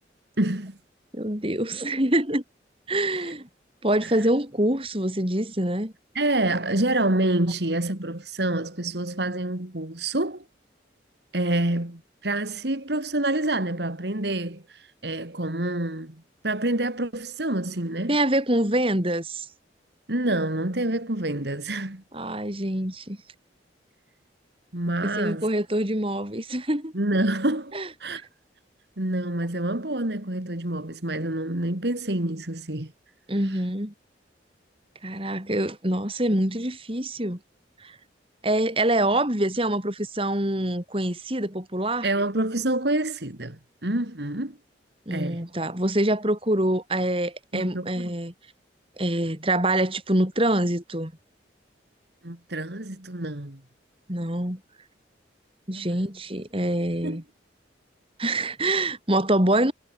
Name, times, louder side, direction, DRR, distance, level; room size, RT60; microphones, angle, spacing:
voice 1, 0.4-0.8 4.0-4.2 6.1-10.4 11.3-18.2 20.1-22.0 24.7-25.5 26.9-28.3 29.0-32.9 33.4-33.6 36.3-36.4 42.0-44.6 45.1-45.4 47.5-48.1 52.2-53.6 55.7-56.0 57.0-57.2, right 1 dB, 65° right, 2.6 m, -27 dB
voice 2, 1.1-2.4 2.9-3.5 3.8-5.9 18.1-19.5 22.1-23.2 25.1-26.9 27.7-27.9 33.3-33.9 35.0-37.4 37.8-38.0 38.4-42.1 45.1-48.3 49.0-51.1 54.1-54.6 55.7-57.2 58.2-59.7, right 1 dB, 30° right, 4.6 m, -25 dB
head